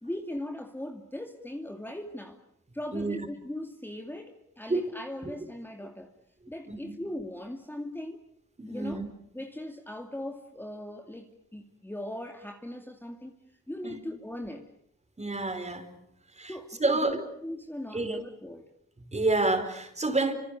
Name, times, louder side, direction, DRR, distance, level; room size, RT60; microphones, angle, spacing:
voice 1, 0.0-2.4 2.7-6.1 6.5-8.2 8.7-9.0 9.3-13.3 13.7-14.7 16.5-18.7, left 1 dB, 5° left, 2.4 m, -39 dB
voice 2, 8.6-9.0 13.8-14.0 15.2-15.9 16.3-17.3 17.9-18.2 19.1-20.3, right 2 dB, 25° right, 4.8 m, -29 dB
29.0 x 26.0 x 6.7 m
cardioid pair, 80°, 29 cm